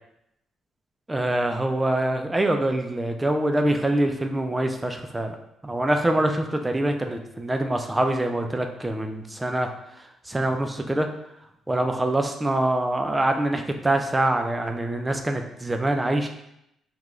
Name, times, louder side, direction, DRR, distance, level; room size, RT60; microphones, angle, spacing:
voice 1, 1.1-5.4 5.6-9.7 10.3-11.1 11.7-16.3, right 1 dB, 15° right, 4 dB, 0.4 m, -24 dB
3.0 x 2.2 x 3.6 m, 0.80 s
cardioid pair, 100°, 0 cm